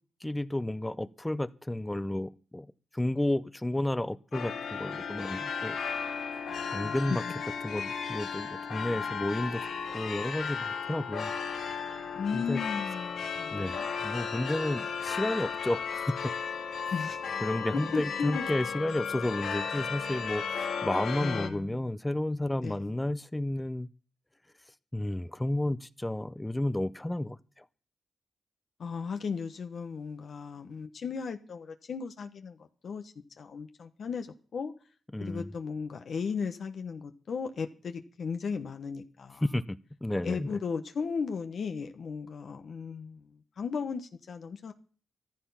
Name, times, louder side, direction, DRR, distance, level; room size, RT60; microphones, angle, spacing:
voice 1, 0.2-5.8 6.7-7.2 7.6-11.3 12.3-12.6 13.5-16.2 17.4-23.9 24.9-27.6 35.1-35.5 39.4-40.6, left 1 dB, 15° left, 0.7 m, -32 dB
sound 1, 4.3-21.5, left 6 dB, 85° left, 1.9 m, -35 dB
voice 2, 12.1-13.9 16.9-17.2 17.9-18.4 21.2-21.9 22.6-22.9 28.8-34.3 34.5-34.7 35.2-39.4 40.2-44.7, left 5 dB, 70° left, 1.2 m, -36 dB
14.5 x 12.5 x 5.8 m
cardioid pair, 70°, 0 cm